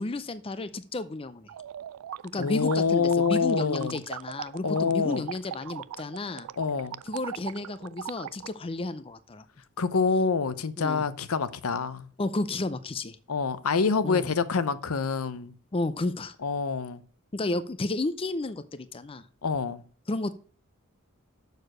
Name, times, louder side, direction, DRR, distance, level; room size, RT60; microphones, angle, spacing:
voice 1, 0.0-1.5 2.3-6.5 7.0-9.4 10.8-11.0 12.2-13.2 14.0-14.3 15.7-16.3 17.3-19.3 20.1-20.4, left 2 dB, 25° left, 0.5 m, -32 dB
sound 1, 1.5-8.5, right 10 dB, 75° right, 0.3 m, -40 dB
voice 2, 2.4-4.0 4.6-5.2 6.6-7.0 9.8-12.1 13.3-15.5 16.4-17.0 19.4-19.8, left 5 dB, 75° left, 0.7 m, -26 dB
6.7 x 6.7 x 6.3 m
head